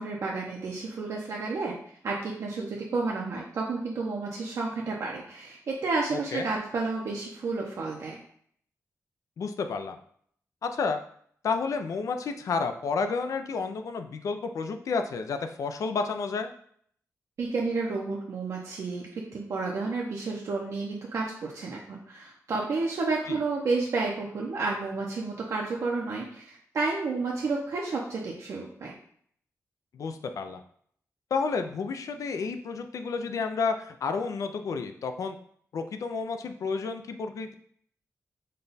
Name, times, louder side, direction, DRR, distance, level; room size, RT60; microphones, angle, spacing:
voice 1, 0.0-1.7 2.0-8.2 17.4-28.9, right 3 dB, 65° right, -2 dB, 0.6 m, -31 dB
voice 2, 6.1-6.5 9.4-10.0 10.6-11.0 11.4-16.5 23.3-23.4 29.9-30.6 31.3-35.4 35.7-37.5, left 4 dB, 70° left, 7 dB, 0.4 m, -31 dB
5.3 x 2.3 x 4.0 m, 0.63 s
wide cardioid pair, 180°, 6 cm